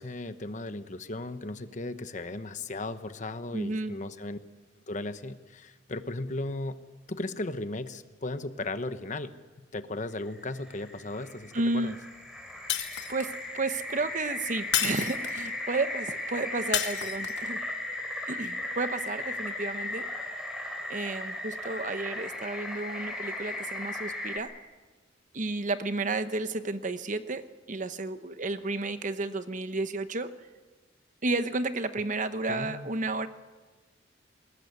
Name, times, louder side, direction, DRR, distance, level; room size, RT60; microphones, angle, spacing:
voice 1, 0.0-4.4 4.9-9.3 9.7-12.0 32.5-32.9, left 2 dB, 40° left, 11 dB, 1.0 m, -36 dB
voice 2, 3.5-3.9 11.5-12.0 13.1-17.6 18.3-20.1 20.9-24.5 25.3-30.3 31.2-33.3, right 3 dB, 40° right, 11 dB, 1.0 m, -32 dB
sound 1, 10.4-24.4, left 2 dB, 5° right, 3.8 m, -37 dB
Shatter, 12.7-13.4 14.7-15.5 16.7-17.5, left 10 dB, 65° left, 1.5 m, -30 dB
21.0 x 19.0 x 9.4 m, 1.3 s
head